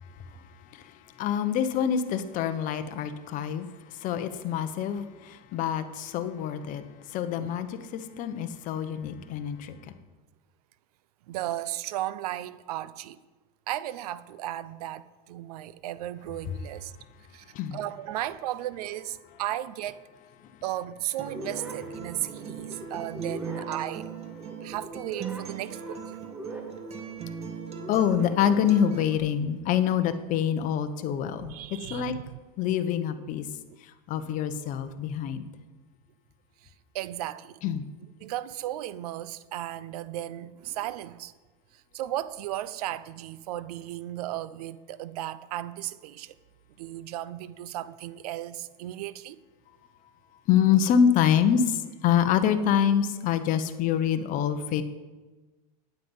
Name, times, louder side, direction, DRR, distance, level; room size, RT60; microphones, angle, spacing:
voice 1, 1.2-3.7 4.0-6.8 7.1-9.7 17.5-17.8 27.9-31.6 31.9-32.1 32.6-33.5 34.1-35.5 37.6-37.8 50.5-54.8, left 8 dB, 40° left, 1.0 m, -26 dB
voice 2, 11.3-13.2 13.7-16.9 17.3-17.4 17.7-20.0 20.6-24.1 24.6-26.2 31.4-32.4 36.6-36.7 36.9-37.6 38.2-41.3 41.9-46.3 46.8-49.4, right 13 dB, 75° right, 0.7 m, -35 dB
Acoustic guitar, 21.2-29.2, right 6 dB, 30° right, 1.6 m, -40 dB
sound 1, 21.3-29.2, right 2 dB, 5° right, 1.7 m, -43 dB
12.0 x 9.5 x 5.5 m
supercardioid pair, 135°, 20 cm